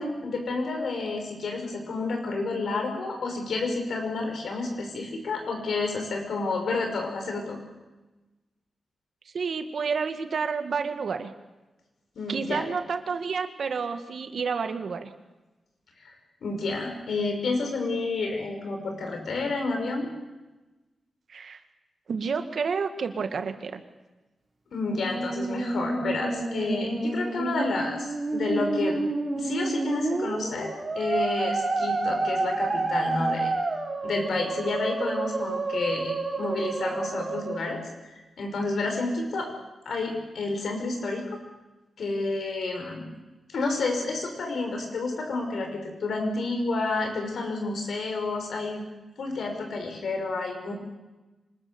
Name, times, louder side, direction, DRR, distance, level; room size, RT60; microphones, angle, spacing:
voice 1, 0.0-7.6 12.2-12.6 16.0-16.1 16.4-20.1 24.7-29.0 29.4-30.7 31.0-33.5 34.0-37.8 38.4-39.5 39.9-41.4 42.0-43.0 43.5-48.8 49.2-50.7, left 3 dB, 75° left, 3 dB, 5.9 m, -30 dB
voice 2, 9.3-11.3 12.3-15.1 21.3-21.6 22.1-23.8, right 5 dB, 65° right, 8 dB, 1.7 m, -30 dB
Musical instrument, 24.8-37.8, right 3 dB, 35° right, 3.8 m, -29 dB
25.5 x 20.0 x 7.1 m, 1.1 s
wide cardioid pair, 110°, 0 cm